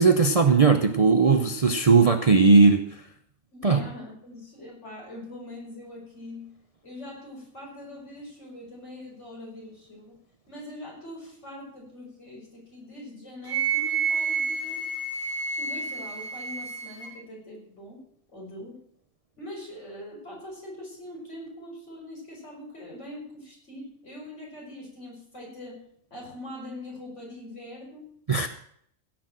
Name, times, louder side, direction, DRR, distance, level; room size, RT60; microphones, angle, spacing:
voice 1, 0.0-2.8 3.6-3.8 28.3-28.5, right 4 dB, 35° right, 7 dB, 0.6 m, -18 dB
voice 2, 3.5-6.5 6.8-10.2 10.5-14.9 15.5-18.0 18.3-18.8 19.4-25.8 26.1-28.1, left 1 dB, 60° left, -2 dB, 5.5 m, -42 dB
Wind instrument woodwind instrument, 13.5-17.1, right 5 dB, 80° left, 4.5 m, -29 dB
16.5 x 6.1 x 7.5 m, 0.67 s
omnidirectional pair, 1.4 m